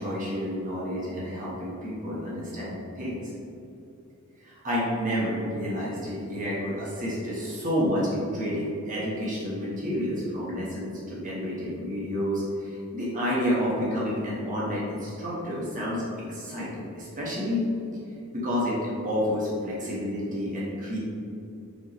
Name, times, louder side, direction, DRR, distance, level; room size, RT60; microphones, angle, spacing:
voice 1, 0.0-3.3 4.4-17.6 18.3-21.0, equal, 35° right, -7 dB, 1.3 m, -30 dB
5.9 x 5.2 x 3.1 m, 2.8 s
head